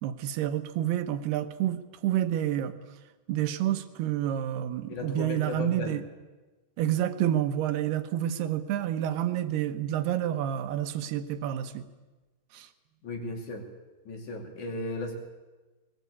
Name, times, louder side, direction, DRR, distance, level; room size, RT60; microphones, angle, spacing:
voice 1, 0.0-2.8 3.3-6.0 6.8-11.9 12.5-12.7, right 11 dB, 75° right, 9 dB, 2.7 m, -29 dB
voice 2, 4.9-6.0 13.0-13.7 14.1-15.1, left 2 dB, 45° left, 3 dB, 3.7 m, -35 dB
21.5 x 19.5 x 8.4 m, 1.2 s
omnidirectional pair, 5.2 m